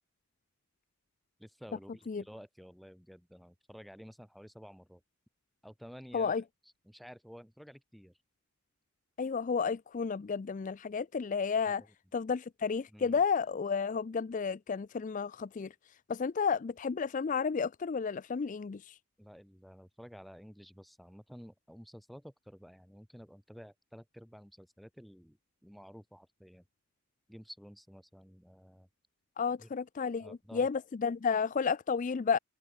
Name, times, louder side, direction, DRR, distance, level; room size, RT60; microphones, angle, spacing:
voice 1, 1.4-5.0 5.6-6.4 6.6-8.2 11.7-11.8 12.9-13.2 19.2-26.6 27.3-28.9 29.6-29.7 30.2-30.7, equal, ahead, 7.4 m, -52 dB
voice 2, 9.2-11.8 12.1-15.7 16.1-19.0 29.4-32.4, left 5 dB, 35° left, 0.4 m, -32 dB
open air
head